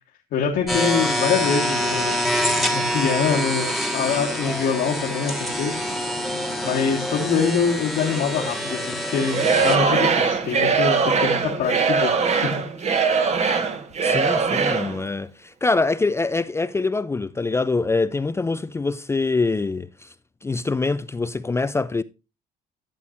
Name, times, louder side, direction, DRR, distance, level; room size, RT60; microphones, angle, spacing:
voice 1, 0.3-2.2 2.7-5.8 6.1-6.2 6.6-12.5 12.8-13.2, left 6 dB, 70° left, 1.7 m, -24 dB
sound 1, 0.7-9.8, equal, ahead, 1.4 m, -26 dB
Singing / Crowd, 9.3-15.0, right 5 dB, 40° right, 1.3 m, -21 dB
voice 2, 14.0-20.1 20.4-22.0, left 3 dB, 15° left, 0.4 m, -24 dB
12.0 x 7.1 x 2.5 m
cardioid pair, 110°, 17 cm